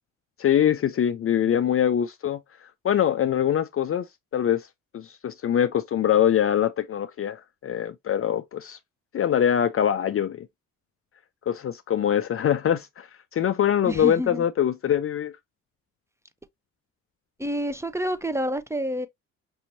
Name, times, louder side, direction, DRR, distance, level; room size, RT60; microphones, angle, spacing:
voice 1, 0.4-2.4 2.8-4.1 4.3-4.7 4.9-8.8 9.1-10.5 11.5-13.1 13.3-15.4, left 9 dB, 40° left, 0.4 m, -23 dB
voice 2, 13.8-14.4 17.4-19.1, equal, 10° right, 0.7 m, -28 dB
5.4 x 2.9 x 2.6 m
supercardioid pair, 65°, 34 cm